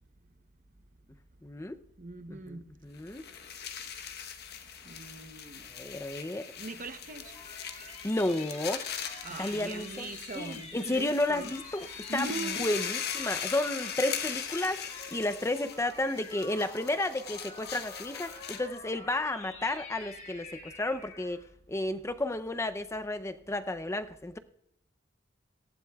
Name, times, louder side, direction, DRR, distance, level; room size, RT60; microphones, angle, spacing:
voice 1, 1.4-1.8 2.3-3.2 5.7-6.5 8.0-8.8 9.4-14.8 15.1-24.4, left 1 dB, 15° left, 10 dB, 0.5 m, -32 dB
voice 2, 2.0-2.7 4.9-5.7 6.6-7.3 9.2-11.5 12.1-12.7, right 3 dB, 45° right, 9 dB, 0.9 m, -41 dB
sound 1, 3.0-18.8, left 8 dB, 55° left, 1.1 m, -40 dB
sound 2, 6.8-21.5, left 3 dB, 40° left, 2.7 m, -48 dB
18.5 x 15.5 x 2.3 m, 0.79 s
head